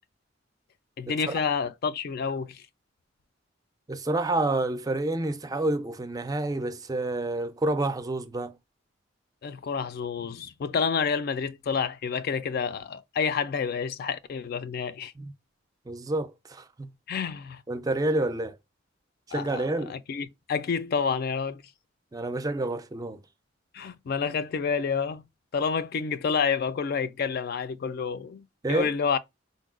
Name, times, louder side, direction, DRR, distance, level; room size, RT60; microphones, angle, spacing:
voice 1, 1.0-2.6 9.4-15.1 17.1-17.6 19.3-21.6 23.7-25.2 25.5-29.2, left 6 dB, 55° left, 0.3 m, -29 dB
voice 2, 3.9-8.6 15.2-15.3 15.9-16.9 17.7-18.6 19.3-20.0 22.1-23.2 28.6-28.9, right 2 dB, 20° right, 0.4 m, -28 dB
3.8 x 2.1 x 2.4 m
head